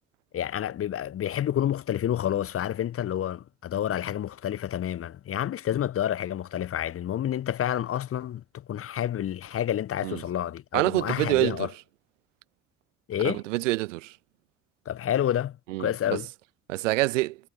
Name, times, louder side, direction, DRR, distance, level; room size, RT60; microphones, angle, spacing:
voice 1, 0.3-11.7 13.1-13.4 14.9-16.3, left 11 dB, 35° left, 0.8 m, -29 dB
voice 2, 10.7-11.7 13.2-14.1 15.7-16.2 16.7-17.4, right 19 dB, 75° right, 0.6 m, -26 dB
figure-of-eight pair, 45°, 37 cm